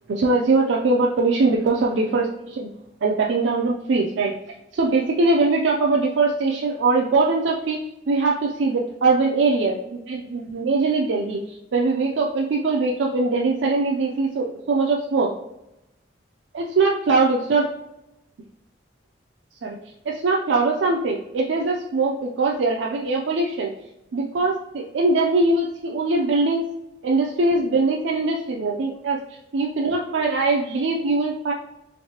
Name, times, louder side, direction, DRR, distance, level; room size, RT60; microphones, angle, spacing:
voice 1, 0.1-2.7 3.0-4.3 4.7-15.3 16.5-17.7 19.6-19.8 20.1-23.7 24.1-26.6 27.0-31.5, right 3 dB, 75° right, -1 dB, 0.4 m, -22 dB
3.5 x 3.2 x 2.8 m, 0.89 s
head